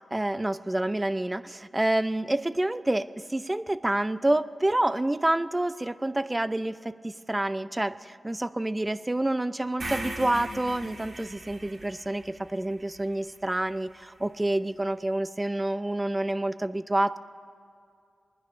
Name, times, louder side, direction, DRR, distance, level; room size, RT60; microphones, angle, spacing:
voice 1, 0.1-17.2, right 1 dB, 20° right, 15 dB, 0.5 m, -28 dB
sound 1, 9.8-13.9, right 1 dB, 65° right, 2.4 m, -40 dB
23.5 x 10.0 x 5.6 m, 2.4 s
cardioid pair, 65°, 0 cm